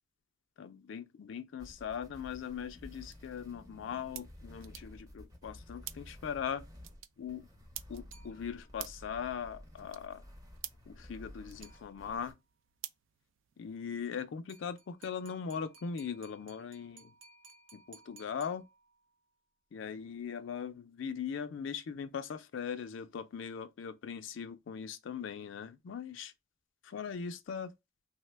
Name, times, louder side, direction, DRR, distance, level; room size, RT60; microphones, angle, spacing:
voice 1, 0.6-6.6 7.2-7.5 7.9-10.2 10.9-12.4 13.6-17.1 17.7-18.6 19.7-26.3 26.8-27.7, left 7 dB, 65° left, 0.4 m, -40 dB
sound 1, 1.6-12.3, left 1 dB, 20° right, 0.7 m, -53 dB
sound 2, 2.3-13.8, right 13 dB, 70° right, 0.3 m, -52 dB
sound 3, 8.1-8.9 11.6-12.4 14.5-19.2, right 3 dB, 90° right, 0.8 m, -59 dB
3.2 x 2.1 x 3.2 m
head